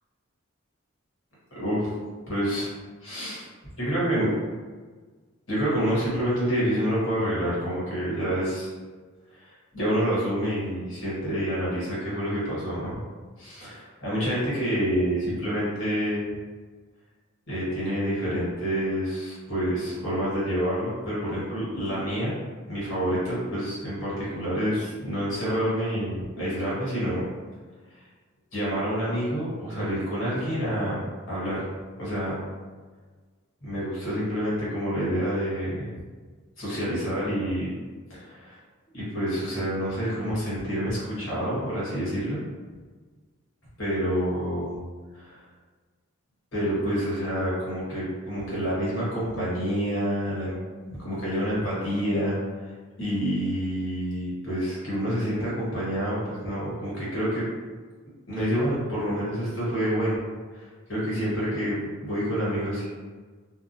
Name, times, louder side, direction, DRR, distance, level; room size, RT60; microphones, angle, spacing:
voice 1, 1.5-1.9 2.3-2.7 3.0-3.4 3.8-4.4 5.5-8.7 9.3-13.0 13.4-16.3 17.5-22.4 22.7-27.2 27.9-28.0 28.5-31.7 32.0-32.4 33.6-35.9 36.6-37.7 38.1-38.6 38.9-42.4 43.8-44.8 45.1-45.4 46.5-50.5 50.9-52.7 53.0-57.5 58.3-60.2 60.5-62.9, equal, 60° left, -8 dB, 1.2 m, -28 dB
2.9 x 2.1 x 2.6 m, 1.4 s
head